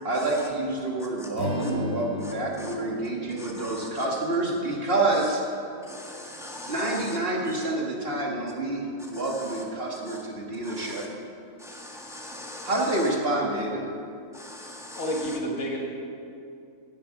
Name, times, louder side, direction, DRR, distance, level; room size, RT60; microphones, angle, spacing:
voice 1, 0.0-5.4 6.7-11.0 12.6-13.9, right 2 dB, 45° right, -1 dB, 2.1 m, -28 dB
Strum, 1.3-5.8, left 3 dB, 55° left, 2.0 m, -37 dB
voice 2, 2.2-2.7 3.4-4.0 5.9-7.2 7.5-7.6 9.1-9.6 10.1-10.2 10.6-11.1 11.6-13.1 14.3-15.4, left 1 dB, ahead, -1 dB, 1.5 m, -42 dB
voice 3, 5.8-6.7 14.6-14.7 15.0-15.8, equal, 70° left, -2 dB, 2.1 m, -33 dB
16.5 x 8.6 x 5.9 m, 2.5 s
omnidirectional pair, 1.4 m